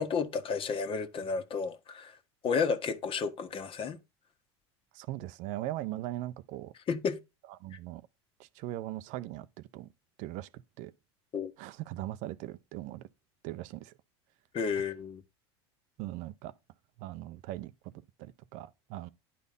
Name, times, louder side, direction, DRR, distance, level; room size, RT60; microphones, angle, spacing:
voice 1, 0.0-2.1 2.4-4.0 6.9-7.2 7.7-7.8 11.3-11.5 14.5-15.2, left 5 dB, 40° left, 1.6 m, -32 dB
voice 2, 4.9-6.7 7.6-8.0 8.4-9.9 10.2-10.9 11.6-13.0 13.4-13.9 16.0-16.5 17.0-17.9 18.2-19.1, right 15 dB, 60° right, 0.8 m, -40 dB
10.5 x 4.2 x 5.4 m
hypercardioid pair, 95°, 14 cm